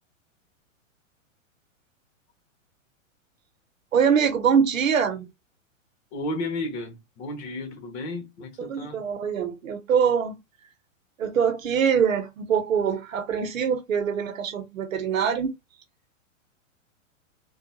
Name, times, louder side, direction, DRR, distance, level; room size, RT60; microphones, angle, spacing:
voice 1, 3.9-5.3 8.6-10.4 11.2-15.5, right 7 dB, 85° right, 1.0 m, -23 dB
voice 2, 6.1-9.0, left 2 dB, 55° left, 1.5 m, -33 dB
3.8 x 2.4 x 2.6 m
hypercardioid pair, 120°, 39 cm